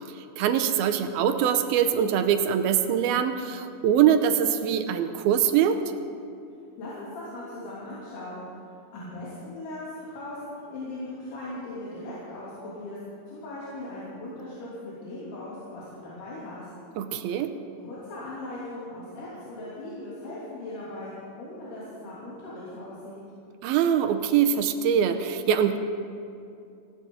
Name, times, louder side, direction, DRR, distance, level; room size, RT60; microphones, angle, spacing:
voice 1, 0.4-5.8 17.0-17.5 23.6-25.8, right 9 dB, 85° right, 7 dB, 2.6 m, -23 dB
voice 2, 6.8-8.5 8.9-13.0 13.3-16.7 17.8-23.2, left 1 dB, 85° left, -9 dB, 5.0 m, -39 dB
19.5 x 16.5 x 3.9 m, 2.6 s
omnidirectional pair, 4.5 m